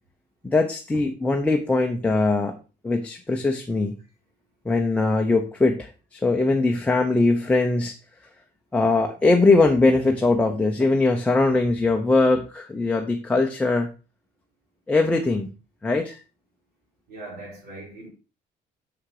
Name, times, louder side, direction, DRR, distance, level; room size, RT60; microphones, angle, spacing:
voice 1, 0.4-2.6 2.8-4.0 4.6-7.9 8.7-13.9 14.9-15.5 15.8-16.2, left 3 dB, 5° left, 0.7 m, -21 dB
voice 2, 17.1-18.1, right 2 dB, 65° right, 4.2 m, -40 dB
6.9 x 6.3 x 4.8 m
cardioid pair, 180°, 18 cm